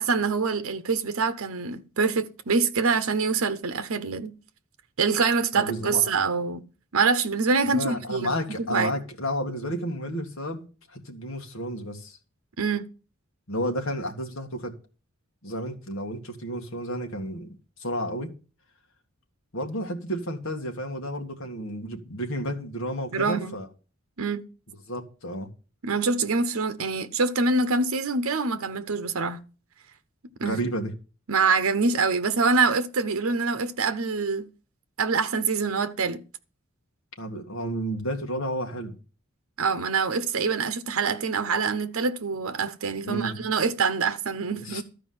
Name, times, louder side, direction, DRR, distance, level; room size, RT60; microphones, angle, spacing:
voice 1, 0.0-4.3 5.0-6.6 6.9-8.3 8.7-8.9 12.6-12.9 23.1-23.6 24.2-24.4 25.8-29.4 30.4-30.6 31.3-34.5 35.0-36.2 39.6-44.8, right 4 dB, 85° right, 0.8 m, -25 dB
voice 2, 5.5-6.1 7.7-12.2 13.5-14.8 15.4-18.3 19.5-23.7 24.9-25.5 30.4-30.9 37.2-39.0 43.0-43.4 44.5-44.8, equal, 75° left, 2.0 m, -31 dB
13.0 x 4.9 x 7.8 m
head